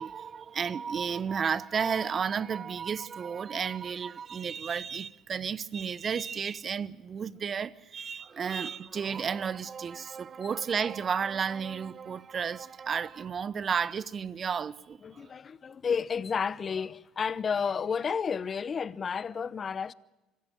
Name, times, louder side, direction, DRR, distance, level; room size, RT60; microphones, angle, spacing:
voice 1, 0.0-15.3, right 6 dB, 40° right, 1.0 m, -32 dB
voice 2, 15.0-19.9, left 6 dB, 40° left, 0.9 m, -31 dB
25.5 x 15.5 x 9.2 m
hypercardioid pair, 65°, 0 cm